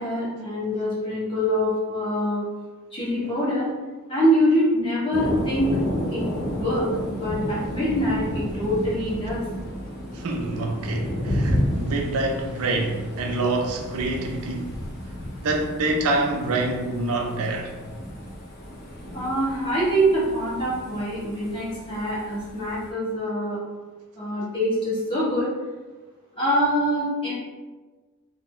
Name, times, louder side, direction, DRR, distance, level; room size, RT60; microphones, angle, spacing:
voice 1, 0.0-2.4 2.9-3.7 4.1-5.7 6.1-6.2 6.5-9.4 19.1-23.6 24.1-25.5 26.4-27.3, equal, 25° left, -8 dB, 1.1 m, -24 dB
Thunder, 5.1-22.9, equal, 50° left, 0.7 m, -32 dB
voice 2, 10.1-14.8 15.4-17.7, right 2 dB, 65° right, 2 dB, 0.4 m, -26 dB
2.5 x 2.1 x 3.6 m, 1.3 s
head